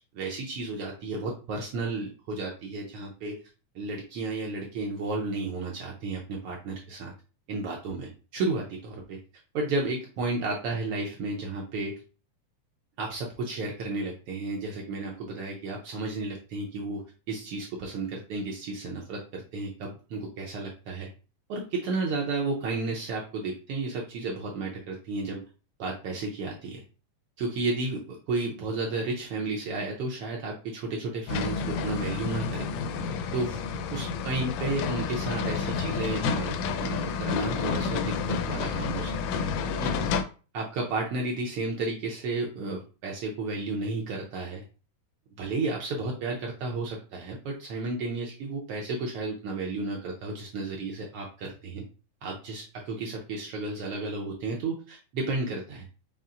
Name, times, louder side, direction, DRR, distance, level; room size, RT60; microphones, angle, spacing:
voice 1, 0.1-3.4 3.7-7.1 7.5-9.2 9.5-12.0 13.0-21.1 21.5-25.4 25.8-26.8 27.4-32.7 33.3-33.6 33.9-39.5 39.8-40.0 40.5-44.6 45.4-51.8 52.2-55.9, right 3 dB, 80° right, -1 dB, 1.3 m, -32 dB
sound 1, 31.3-40.2, left 5 dB, 85° left, 2.0 m, -30 dB
5.6 x 2.0 x 3.7 m, 0.34 s
omnidirectional pair, 3.4 m